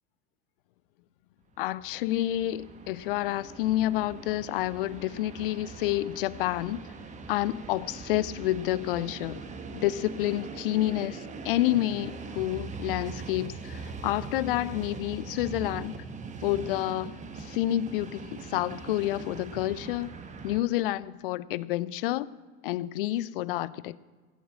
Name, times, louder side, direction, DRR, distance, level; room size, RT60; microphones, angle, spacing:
voice 1, 1.6-6.8 7.3-9.4 9.7-16.0 16.4-20.1 20.4-22.4 22.6-24.0, left 15 dB, 45° left, 0.4 m, -29 dB
Train, 1.6-20.6, right 4 dB, 15° right, 0.9 m, -41 dB
15.0 x 6.9 x 7.3 m
figure-of-eight pair, 85°, 42 cm